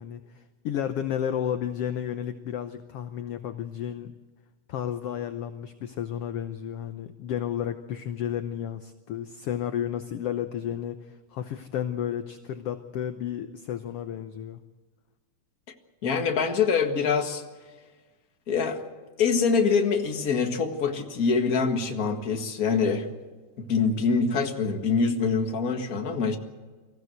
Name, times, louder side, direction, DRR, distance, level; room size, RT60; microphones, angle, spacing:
voice 1, 0.0-4.1 4.7-14.6, left 10 dB, 70° left, 9 dB, 1.5 m, -32 dB
voice 2, 16.0-17.4 18.5-18.8 19.2-23.1 23.6-26.4, left 5 dB, 35° left, 5 dB, 1.7 m, -24 dB
24.0 x 15.5 x 8.0 m, 1.3 s
omnidirectional pair, 3.5 m